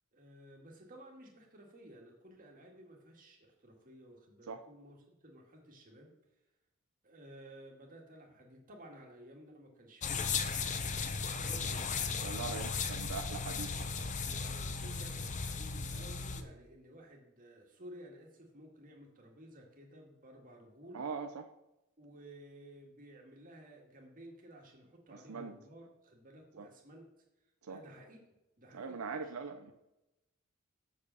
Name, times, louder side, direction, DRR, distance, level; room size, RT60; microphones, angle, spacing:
voice 1, 0.1-6.1 7.0-10.3 11.2-11.9 14.3-21.0 22.0-27.1 27.7-28.2 28.6-29.3 29.7-29.8, right 1 dB, 40° right, 0 dB, 1.8 m, -54 dB
sound 1, 10.0-16.4, left 5 dB, 35° left, 0.6 m, -36 dB
voice 2, 12.2-14.2 20.9-21.4 25.1-25.6 26.6-26.7 27.6-27.8 28.7-29.7, right 4 dB, 75° right, 6 dB, 0.6 m, -42 dB
6.7 x 5.0 x 6.8 m, 0.94 s
head